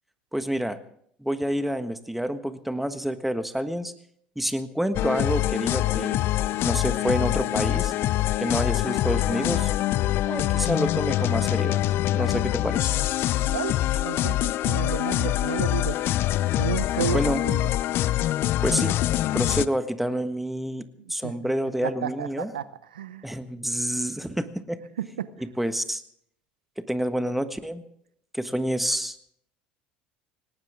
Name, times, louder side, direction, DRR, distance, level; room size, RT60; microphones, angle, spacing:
voice 1, 0.3-0.8 1.2-3.9 4.3-6.2 6.6-7.9 8.4-9.7 10.3-11.8 12.1-13.0 17.1-17.4 18.6-19.0 19.3-22.5 23.2-24.8 25.4-26.0 26.9-27.8 28.3-29.2, right 1 dB, 5° right, 10 dB, 1.5 m, -28 dB
sound 1, 4.9-19.7, left 14 dB, 55° left, 0.5 m, -24 dB
voice 2, 13.4-16.0 16.6-17.2 17.5-17.6 21.2-21.3 21.8-22.3 22.5-22.6 22.9-23.2 25.0-25.3, right 10 dB, 85° right, 16 dB, 0.7 m, -31 dB
18.5 x 18.5 x 3.6 m, 0.65 s
hypercardioid pair, 70°, 5 cm